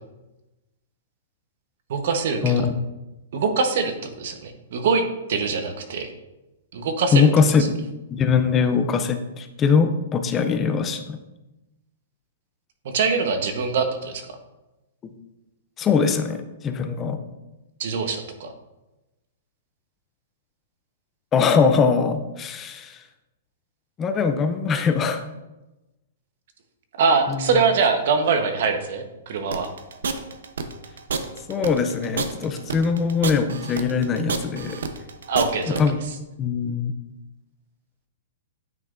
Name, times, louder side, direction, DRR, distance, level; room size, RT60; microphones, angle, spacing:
voice 1, 1.9-2.6 3.3-5.0 5.3-6.1 6.7-7.3 12.8-14.2 17.8-18.5 27.0-29.7 35.3-35.8, right 5 dB, 50° right, 7 dB, 0.9 m, -23 dB
voice 2, 2.4-2.7 7.1-11.2 15.0-15.1 15.8-17.2 21.3-23.0 24.0-25.2 27.3-27.5 31.5-34.8 35.7-36.0 36.4-36.9, left 5 dB, 15° left, 8 dB, 0.4 m, -22 dB
sound 1, 29.5-35.8, right 5 dB, 90° right, 0.7 m, -29 dB
9.2 x 5.6 x 2.5 m, 1.0 s
hypercardioid pair, 170°, 0 cm